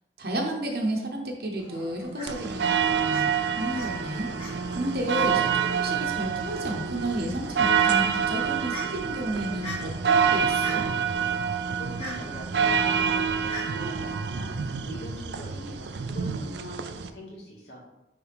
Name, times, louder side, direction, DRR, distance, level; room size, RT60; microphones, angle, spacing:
voice 1, 0.2-3.3 3.6-4.3 4.7-10.9, right 1 dB, 55° right, 0 dB, 0.9 m, -32 dB
Fowl, 1.6-15.2, left 1 dB, 30° left, 2.1 m, -45 dB
sound 1, 2.3-17.1, right 7 dB, 75° right, 0.4 m, -27 dB
Bowed string instrument, 2.6-5.8, right 1 dB, 20° right, 1.4 m, -47 dB
voice 2, 11.7-14.6 14.8-17.8, equal, 75° left, -4 dB, 2.2 m, -41 dB
9.7 x 3.5 x 3.5 m, 0.92 s
head